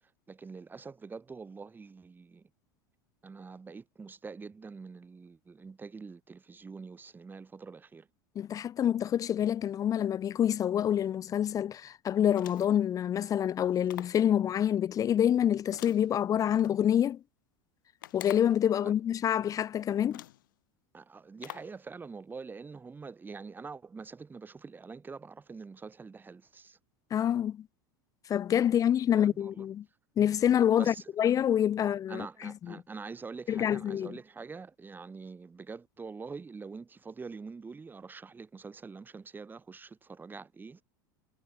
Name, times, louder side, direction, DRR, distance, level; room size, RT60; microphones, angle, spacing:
voice 1, 0.3-2.5 3.2-8.1 18.8-18.9 20.9-26.8 29.1-29.7 30.7-31.1 31.8-40.8, right 4 dB, 15° right, 2.0 m, -45 dB
voice 2, 8.4-17.2 18.1-20.2 27.1-27.7 28.3-29.8 30.2-32.7 33.5-34.2, left 10 dB, 30° left, 0.7 m, -27 dB
sound 1, 12.3-12.9 13.9-14.3 15.7-16.7 18.0-18.7 19.5-19.6 20.1-20.5 21.4-21.8, left 14 dB, 75° left, 1.7 m, -46 dB
hypercardioid pair, 90°, 11 cm